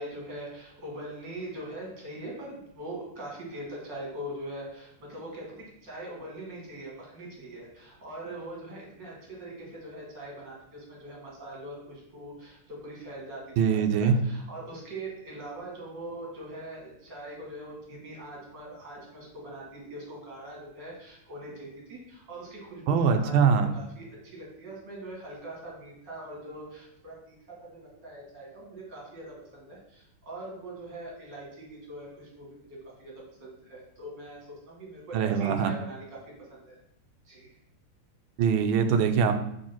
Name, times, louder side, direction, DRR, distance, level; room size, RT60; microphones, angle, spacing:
voice 1, 0.0-33.1 33.4-34.4 34.7-36.2 36.5-36.8 37.3-37.5, right 1 dB, 55° right, -3 dB, 2.7 m, -42 dB
voice 2, 13.6-14.2 22.9-23.7 35.1-35.7 38.4-39.4, right 6 dB, 75° right, 8 dB, 1.4 m, -23 dB
5.2 x 3.7 x 5.7 m, 0.80 s
omnidirectional pair, 2.4 m